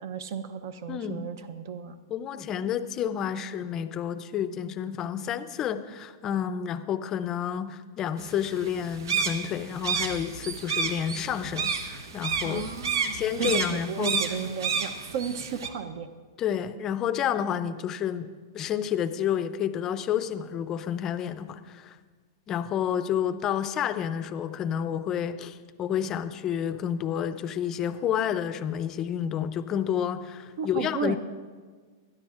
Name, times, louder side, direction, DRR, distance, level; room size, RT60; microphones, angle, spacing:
voice 1, 0.0-1.9 12.4-16.1 30.6-31.2, right 6 dB, 55° right, 10 dB, 0.7 m, -34 dB
voice 2, 0.9-1.3 2.1-12.7 13.1-14.4 16.4-22.0 22.5-31.2, left 9 dB, 20° left, 11 dB, 0.5 m, -30 dB
sound 1, 8.2-15.7, right 5 dB, 90° right, 1.2 m, -31 dB
20.5 x 12.5 x 2.5 m, 1.5 s
supercardioid pair, 160°, 2 cm